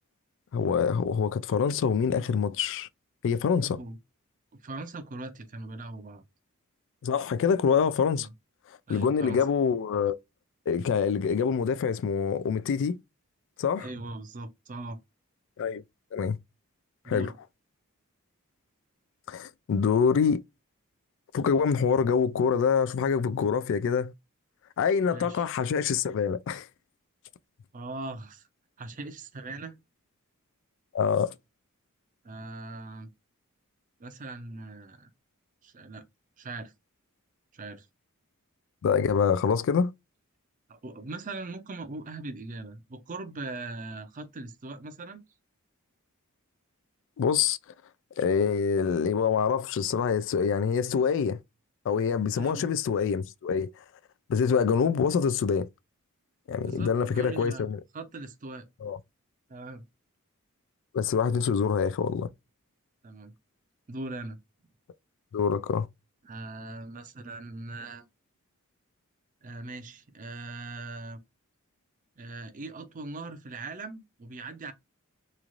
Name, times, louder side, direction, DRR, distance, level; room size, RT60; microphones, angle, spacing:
voice 1, 0.5-2.9 3.2-3.8 7.0-8.3 8.9-10.2 10.7-13.0 13.6-13.9 15.6-15.8 16.1-16.4 17.1-17.3 19.3-20.4 21.3-24.1 24.8-26.7 30.9-31.3 38.8-39.9 47.2-47.6 48.2-51.4 51.9-53.7 54.3-55.7 56.5-57.8 58.8-59.0 60.9-62.3 65.3-65.9, left 6 dB, 60° left, 0.3 m, -25 dB
voice 2, 4.6-6.2 8.2-8.3 8.9-9.4 13.8-15.0 17.0-17.4 25.1-25.4 27.7-28.4 28.8-29.7 32.2-33.1 34.0-35.1 35.6-36.0 36.4-36.7 37.5-37.9 40.7-45.2 52.4-52.6 56.6-58.7 59.5-59.9 63.0-63.3 63.9-64.4 66.2-68.0 69.4-71.2 72.2-74.7, right 2 dB, 35° right, 0.5 m, -40 dB
3.1 x 2.4 x 2.5 m
head